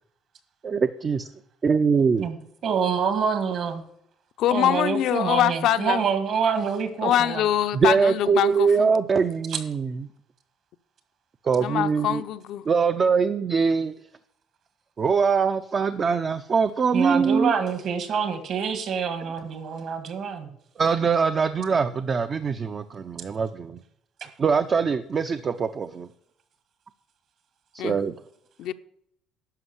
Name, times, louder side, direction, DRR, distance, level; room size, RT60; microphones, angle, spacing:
voice 1, 0.6-1.3 1.6-2.3 7.7-10.1 11.4-12.2 12.7-13.9 15.0-17.5 20.8-23.8 24.4-26.1 27.7-28.2, right 5 dB, 30° right, 0.5 m, -23 dB
voice 2, 2.6-3.8 4.5-7.4 9.5-9.6 16.9-20.5, right 6 dB, 50° right, 1.8 m, -26 dB
voice 3, 4.4-6.0 7.0-8.9 11.6-12.6 27.8-28.0 28.6-28.7, left 11 dB, 65° left, 0.6 m, -24 dB
11.5 x 5.2 x 8.1 m
cardioid pair, 135°, 0 cm